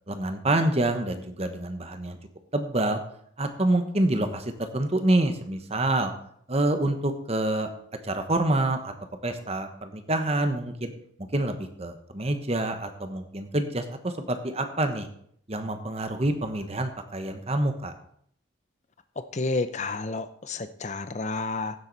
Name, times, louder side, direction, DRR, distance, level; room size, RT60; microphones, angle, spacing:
voice 1, 0.1-2.2 2.5-3.0 3.4-6.1 6.5-7.7 8.0-8.9 9.2-10.9 11.3-15.1 15.5-17.9, right 1 dB, 30° right, 7 dB, 1.1 m, -27 dB
voice 2, 19.3-21.7, left 3 dB, 35° left, 11 dB, 0.6 m, -30 dB
15.5 x 7.5 x 4.1 m, 0.65 s
head